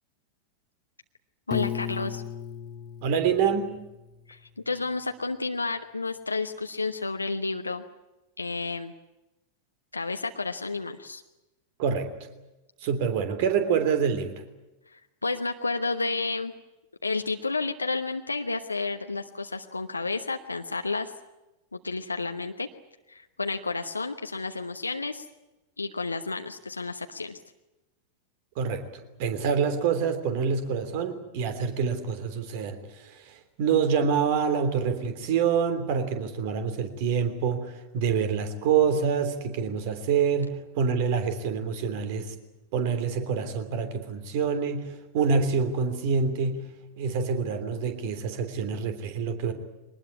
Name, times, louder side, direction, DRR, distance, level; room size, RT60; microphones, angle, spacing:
voice 1, 1.5-2.2 4.3-4.4 4.7-7.8 8.4-8.9 9.9-11.2 14.9-16.5 17.0-21.1 21.7-22.7 23.1-25.3 25.8-27.4, left 3 dB, 80° left, 6 dB, 1.0 m, -31 dB
Piano, 1.5-4.4, left 10 dB, 30° left, 1.0 m, -36 dB
voice 2, 3.0-3.8 11.8-12.1 12.8-14.4 28.5-42.3 42.7-46.7 47.0-49.5, right 6 dB, 50° right, 9 dB, 3.2 m, -26 dB
23.0 x 19.5 x 9.6 m, 1.0 s
figure-of-eight pair, 90°, 0 cm